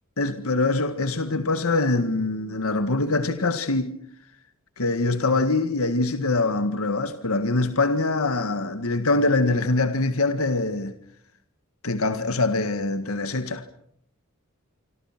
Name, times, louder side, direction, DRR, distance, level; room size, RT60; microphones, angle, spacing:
voice 1, 0.2-3.9 4.8-10.9 11.8-13.6, left 2 dB, 90° left, 1.8 m, -24 dB
27.5 x 25.5 x 6.0 m
head